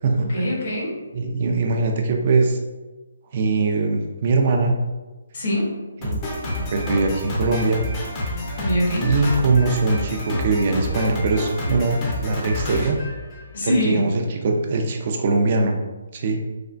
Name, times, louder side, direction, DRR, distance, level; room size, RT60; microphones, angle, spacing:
voice 1, 0.2-1.0 5.3-5.8 8.6-9.1 13.5-14.1, equal, 60° left, -5 dB, 1.2 m, -23 dB
voice 2, 1.1-2.6 3.3-4.8 6.0-7.8 9.0-13.0 13.6-15.8 16.1-16.4, right 3 dB, 45° right, 3 dB, 0.4 m, -22 dB
Drum kit, 6.0-13.8, left 1 dB, 25° left, 0.6 m, -28 dB
3.3 x 2.1 x 2.5 m, 1.2 s
hypercardioid pair, 155°, 0 cm